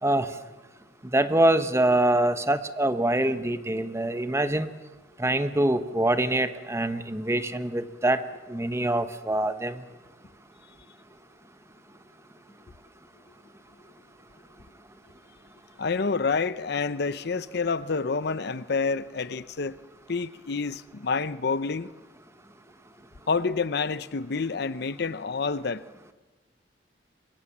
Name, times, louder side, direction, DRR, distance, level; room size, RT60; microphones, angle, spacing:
voice 1, 1.1-4.7 5.2-8.2 8.5-9.8, right 1 dB, 15° right, 1.0 m, -24 dB
voice 2, 15.8-19.8 20.1-21.9 23.3-25.8, left 4 dB, 60° left, 0.7 m, -28 dB
27.0 x 23.5 x 7.3 m
head